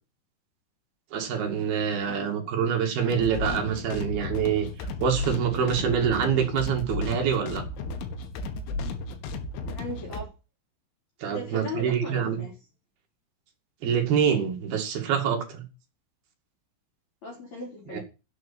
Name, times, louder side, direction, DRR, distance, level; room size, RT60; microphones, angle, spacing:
voice 1, 1.1-4.7 5.0-7.6 11.2-12.4 13.8-15.7 17.9-18.0, right 7 dB, 55° right, 3 dB, 3.8 m, -26 dB
voice 2, 2.0-2.7 9.7-10.3 11.3-12.5 17.2-18.0, left 2 dB, 35° left, -1 dB, 4.8 m, -38 dB
sound 1, 3.1-10.2, left 2 dB, 75° left, 3.9 m, -34 dB
11.0 x 8.6 x 7.4 m, 0.31 s
omnidirectional pair, 5.7 m